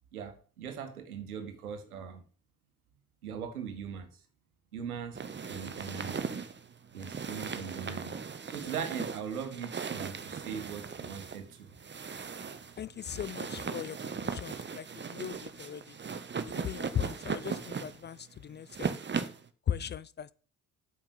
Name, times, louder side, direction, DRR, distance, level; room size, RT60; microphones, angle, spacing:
voice 1, 0.1-2.2 3.2-4.1 4.7-5.2 5.5-6.2 6.9-8.2 8.5-11.7, right 7 dB, 80° right, 1.7 m, -40 dB
sound 1, 5.1-19.5, right 5 dB, 25° right, 1.3 m, -38 dB
voice 2, 12.8-16.0 16.5-19.0 19.7-20.3, left 9 dB, 25° left, 0.4 m, -38 dB
9.0 x 6.3 x 8.3 m
figure-of-eight pair, 50°, 44 cm